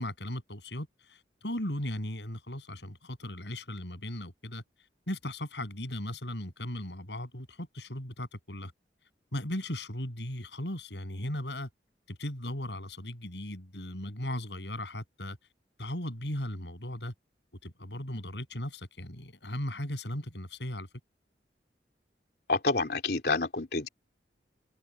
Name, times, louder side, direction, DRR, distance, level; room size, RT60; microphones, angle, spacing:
voice 1, 0.0-4.6 5.1-8.7 9.3-11.7 12.1-15.4 15.8-17.1 17.6-20.9, left 1 dB, 75° left, 7.9 m, -37 dB
voice 2, 22.5-23.9, left 3 dB, 60° left, 3.5 m, -28 dB
head